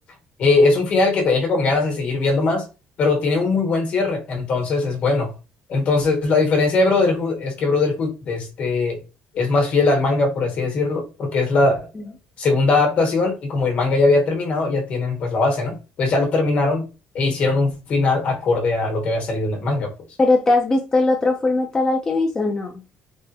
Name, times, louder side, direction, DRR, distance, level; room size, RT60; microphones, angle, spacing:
voice 1, 0.4-2.7 3.0-5.3 5.7-9.0 9.3-11.8 12.4-16.9 17.1-19.9, left 3 dB, 50° left, 1.1 m, -20 dB
voice 2, 20.2-22.8, left 2 dB, 20° left, 0.5 m, -19 dB
3.6 x 2.1 x 2.7 m
cardioid pair, 140°, 3 cm